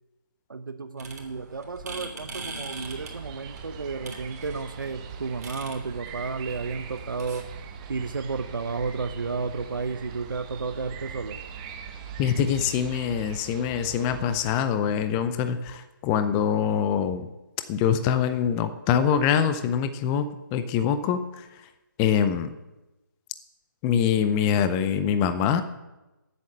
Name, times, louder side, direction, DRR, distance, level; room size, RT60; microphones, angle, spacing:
voice 1, 0.5-7.5 7.9-11.4, right 4 dB, 75° right, 9 dB, 0.9 m, -32 dB
sound 1, 1.0-7.4, right 3 dB, 50° right, 3.2 m, -42 dB
sound 2, 2.7-14.5, right 6 dB, 20° right, 1.0 m, -41 dB
voice 2, 12.2-17.3 17.7-21.5 22.0-22.5 23.8-25.6, left 8 dB, 10° left, 10 dB, 0.4 m, -24 dB
13.0 x 8.5 x 7.4 m, 1.0 s
figure-of-eight pair, 160°, 11 cm